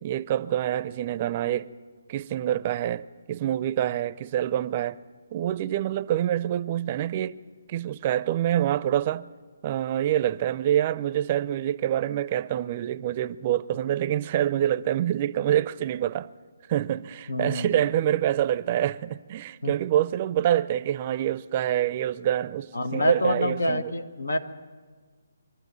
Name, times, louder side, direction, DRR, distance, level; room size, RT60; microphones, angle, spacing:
voice 1, 0.0-1.7 2.1-5.0 5.3-7.4 7.7-9.3 9.6-16.3 16.7-23.9, right 11 dB, 30° right, 0.5 m, -26 dB
voice 2, 17.3-17.8 19.6-19.7 22.7-24.4, left 1 dB, 90° left, 1.6 m, -27 dB
24.5 x 12.5 x 9.7 m
hypercardioid pair, 160°, 0 cm